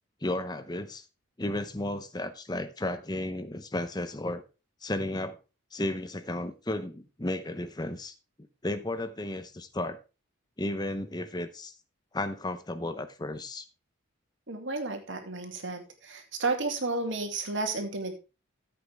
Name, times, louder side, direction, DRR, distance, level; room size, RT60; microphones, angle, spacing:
voice 1, 0.2-1.0 1.4-4.4 4.8-5.4 5.7-8.2 8.6-10.0 10.6-11.7 12.1-13.7, left 1 dB, 20° left, 0.7 m, -33 dB
voice 2, 14.5-18.1, right 3 dB, 65° right, 2.4 m, -32 dB
14.0 x 8.2 x 3.4 m
head